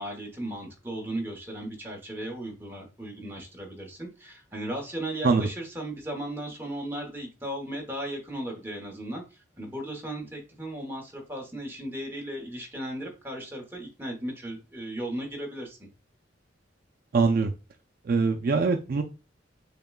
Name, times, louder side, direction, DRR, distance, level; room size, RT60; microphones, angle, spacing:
voice 1, 0.0-15.9, right 1 dB, 10° right, 0 dB, 1.0 m, -36 dB
voice 2, 17.1-17.5 18.0-19.0, right 4 dB, 50° right, 4 dB, 0.4 m, -23 dB
6.5 x 2.2 x 2.3 m, 0.31 s
head